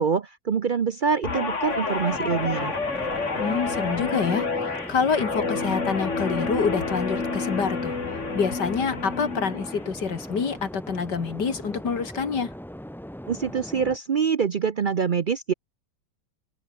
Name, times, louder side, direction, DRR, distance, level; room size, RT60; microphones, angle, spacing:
voice 1, 0.0-2.7 13.3-15.5, right 6 dB, 65° right, 0.4 m, -25 dB
Guitar, 1.2-9.8 10.2-10.5, left 4 dB, 45° left, 2.9 m, -29 dB
sound 1, 2.1-14.0, equal, ahead, 0.6 m, -40 dB
voice 2, 3.4-4.5 4.9-8.0 8.3-12.5, left 5 dB, 85° left, 2.9 m, -26 dB
omnidirectional pair, 1.8 m